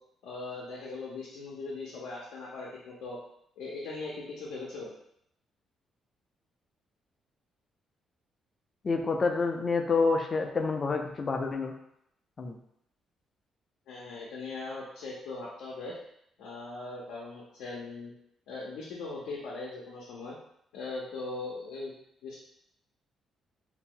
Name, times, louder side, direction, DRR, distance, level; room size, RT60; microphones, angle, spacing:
voice 1, 0.2-3.2 3.6-4.9 13.9-16.0 16.4-18.1 18.5-20.3 20.7-21.9 22.2-22.4, left 3 dB, 85° left, -5 dB, 0.6 m, -39 dB
voice 2, 8.8-11.7 12.4-12.6, left 4 dB, 40° left, 4 dB, 0.4 m, -28 dB
2.7 x 2.0 x 3.7 m, 0.75 s
cardioid pair, 90°, 0 cm